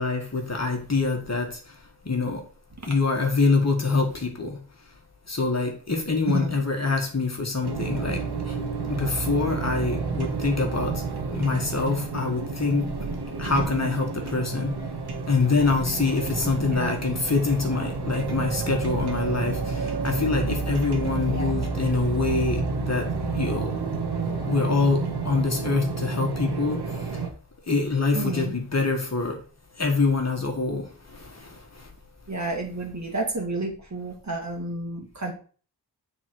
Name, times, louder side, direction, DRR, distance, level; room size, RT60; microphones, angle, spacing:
voice 1, 0.0-1.5 2.0-2.4 2.9-4.6 5.3-8.2 8.9-10.9 11.3-12.8 13.4-14.7 15.3-23.0 23.3-23.7 24.5-26.8 27.7-29.3 29.8-30.8, left 4 dB, 40° left, 2 dB, 1.6 m, -25 dB
voice 2, 6.3-6.6 16.7-17.0 21.3-21.6 28.1-28.5 32.3-35.3, right 2 dB, 40° right, 2 dB, 1.9 m, -31 dB
sound 1, 7.6-27.3, right 4 dB, 70° right, 1.3 m, -30 dB
8.5 x 3.9 x 4.6 m, 0.39 s
wide cardioid pair, 105°, 41 cm